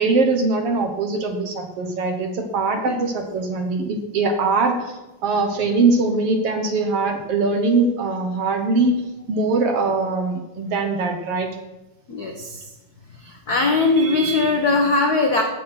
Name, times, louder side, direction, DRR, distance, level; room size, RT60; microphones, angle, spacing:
voice 1, 0.0-11.5, right 3 dB, 60° right, 4 dB, 1.9 m, -22 dB
voice 2, 12.1-12.6 13.2-15.4, left 3 dB, 80° left, 2 dB, 0.8 m, -20 dB
14.0 x 8.5 x 5.8 m, 1.0 s
omnidirectional pair, 3.6 m